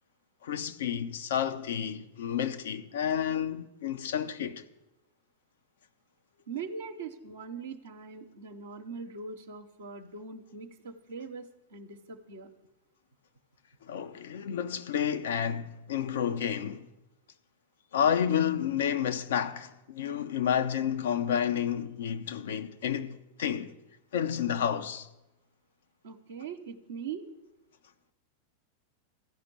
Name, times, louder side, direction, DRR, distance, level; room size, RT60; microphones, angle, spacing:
voice 1, 0.4-4.6 13.8-16.9 17.9-23.7 24.1-25.1, left 8 dB, 60° left, 0.8 m, -30 dB
voice 2, 6.5-12.5 26.0-27.3, right 5 dB, 70° right, 0.8 m, -41 dB
14.5 x 5.8 x 9.8 m
figure-of-eight pair, 90°, 0 cm